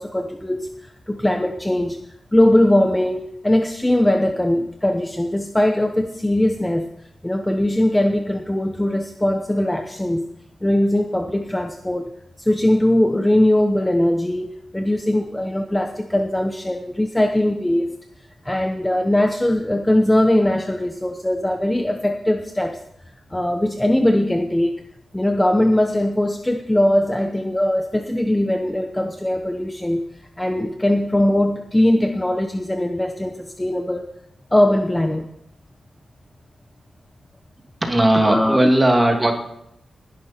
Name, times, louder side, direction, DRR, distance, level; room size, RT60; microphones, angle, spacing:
voice 1, 0.0-2.0 2.3-6.9 7.2-10.2 10.6-12.1 12.4-18.0 18.4-22.8 23.3-24.8 25.1-30.0 30.4-34.1 34.5-35.3 38.1-38.6, left 1 dB, 10° left, 5 dB, 0.9 m, -20 dB
voice 2, 37.8-39.4, right 1 dB, 15° right, 2 dB, 2.6 m, -17 dB
20.0 x 11.5 x 4.4 m, 0.77 s
wide cardioid pair, 155°, 0 cm